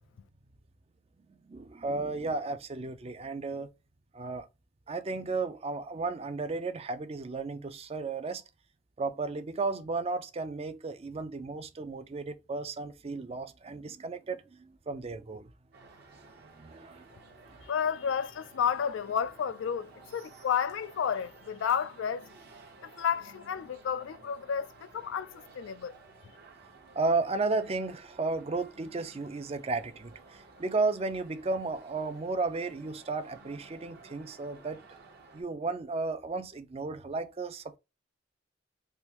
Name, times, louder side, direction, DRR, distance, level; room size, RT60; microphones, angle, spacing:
voice 1, 1.3-3.7 4.1-4.5 4.9-8.4 9.0-15.5 16.4-17.0 17.5-17.6 26.9-34.8 35.3-37.8, right 3 dB, 35° right, 0.5 m, -34 dB
sound 1, 15.7-35.4, right 3 dB, 55° right, 0.9 m, -55 dB
voice 2, 17.7-22.3 22.8-25.9, left 7 dB, 80° left, 0.3 m, -31 dB
3.5 x 2.5 x 2.9 m
head